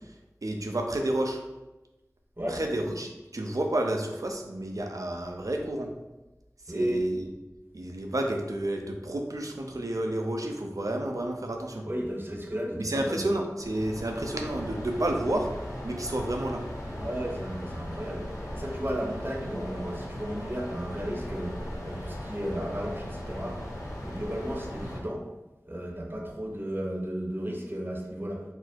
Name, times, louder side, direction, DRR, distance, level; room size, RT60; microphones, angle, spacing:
voice 1, 0.4-1.4 2.5-5.9 6.7-7.3 7.7-11.8 12.8-15.5 15.8-16.6, right 1 dB, 75° right, 2 dB, 0.6 m, -30 dB
voice 2, 6.7-7.1 11.9-13.2 17.0-23.6 24.0-25.3 25.7-28.4, equal, 40° right, -1 dB, 0.8 m, -34 dB
sound 1, 13.6-25.0, left 1 dB, 85° left, 1.3 m, -38 dB
4.2 x 2.0 x 4.4 m, 1.0 s
wide cardioid pair, 40°, 6 cm